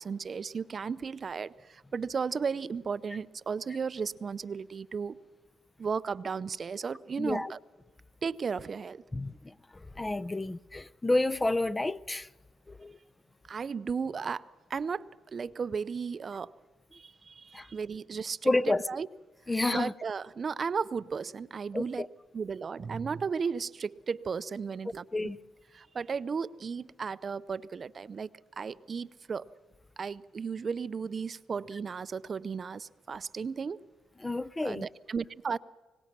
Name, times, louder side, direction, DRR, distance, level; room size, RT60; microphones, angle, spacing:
voice 1, 0.0-5.2 5.8-7.6 8.2-9.0 13.5-14.4 14.7-15.1 15.3-16.5 16.9-18.5 18.9-19.1 19.7-22.1 22.3-25.0 25.7-28.3 28.6-29.5 30.0-33.8 34.6-35.6, right 5 dB, 40° right, 0.5 m, -34 dB
voice 2, 7.2-7.5 9.1-12.3 12.7-13.0 17.5-17.7 18.4-18.9 19.5-19.9 21.7-22.1 25.1-25.4 34.2-34.9, left 2 dB, 15° left, 0.5 m, -30 dB
23.0 x 19.0 x 6.0 m
cardioid pair, 90°, 0 cm